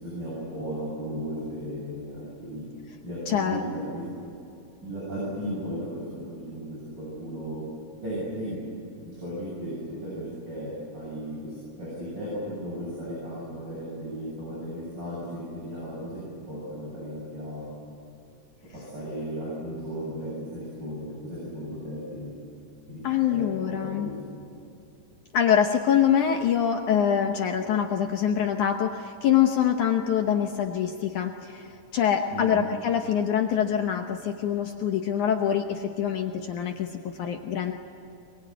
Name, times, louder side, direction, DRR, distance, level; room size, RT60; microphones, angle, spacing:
voice 1, 0.0-2.7 3.0-4.0 4.8-7.6 8.0-8.6 9.0-17.7 18.7-22.3 22.9-23.0 23.3-24.1 32.3-32.6, equal, 25° right, -7 dB, 8.1 m, -35 dB
voice 2, 3.3-3.6 23.0-24.1 25.3-37.7, left 9 dB, 70° left, 4 dB, 2.0 m, -25 dB
23.0 x 22.5 x 9.5 m, 2.8 s
omnidirectional pair, 4.5 m